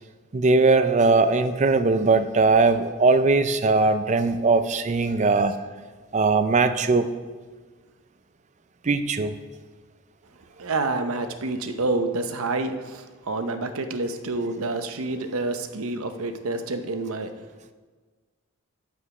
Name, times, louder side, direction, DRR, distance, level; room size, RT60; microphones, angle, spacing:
voice 1, 0.3-5.5 6.1-7.1 8.8-9.4, right 3 dB, 35° right, 10 dB, 0.4 m, -20 dB
voice 2, 10.6-17.3, right 2 dB, 85° right, 8 dB, 0.8 m, -28 dB
8.5 x 7.9 x 4.8 m, 1.4 s
head